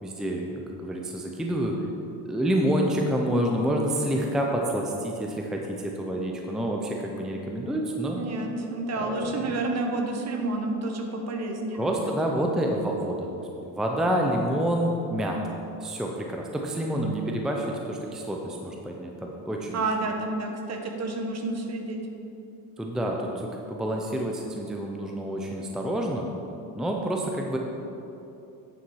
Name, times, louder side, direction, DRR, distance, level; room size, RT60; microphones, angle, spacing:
voice 1, 0.0-1.8 2.2-8.2 9.0-9.3 11.7-19.8 22.8-26.3 26.8-27.6, right 1 dB, ahead, 0 dB, 0.6 m, -28 dB
voice 2, 8.2-11.8 19.7-22.0, right 2 dB, 40° right, 3 dB, 1.2 m, -30 dB
9.2 x 7.1 x 4.7 m, 2.9 s
cardioid pair, 125°, 41 cm